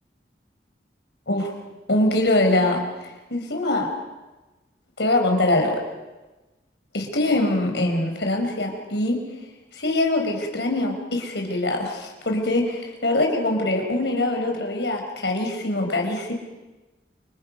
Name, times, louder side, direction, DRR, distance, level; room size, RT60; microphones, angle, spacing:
voice 1, 1.9-2.8 3.3-3.9 5.0-5.8 6.9-9.2 9.7-16.3, left 2 dB, 80° left, 3 dB, 4.5 m, -23 dB
29.0 x 26.0 x 5.3 m, 1.1 s
head